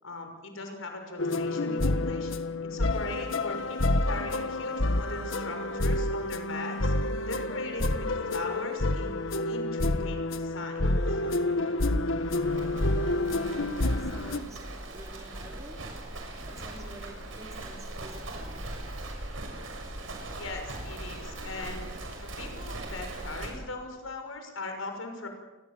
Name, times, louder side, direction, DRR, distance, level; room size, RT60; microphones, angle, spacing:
voice 1, 0.0-2.3 2.6-6.9 7.3-9.2 9.5-11.2 20.4-21.9 22.2-25.3, left 2 dB, 90° left, 5 dB, 6.0 m, -39 dB
sound 1, 1.2-14.4, left 2 dB, 70° left, 1.5 m, -28 dB
Livestock farm animals working animals, 12.2-23.5, right 1 dB, 75° right, 6.8 m, -40 dB
voice 2, 12.6-18.8, right 1 dB, 15° right, 1 dB, 4.7 m, -50 dB
28.0 x 22.0 x 7.6 m, 1.1 s
head